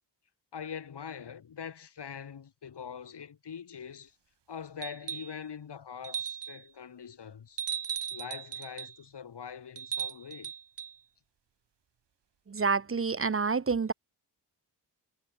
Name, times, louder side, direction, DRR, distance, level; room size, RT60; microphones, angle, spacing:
voice 1, 0.5-4.1 4.5-7.6 8.1-10.5, left 7 dB, 75° left, 2.9 m, -43 dB
sound 1, 4.8-5.4 6.0-6.6 7.6-9.0 9.8-11.0 12.6-12.7, right 8 dB, 85° right, 2.2 m, -37 dB
voice 2, 12.5-13.9, right 5 dB, 30° right, 0.8 m, -28 dB
wide cardioid pair, 115°, 41 cm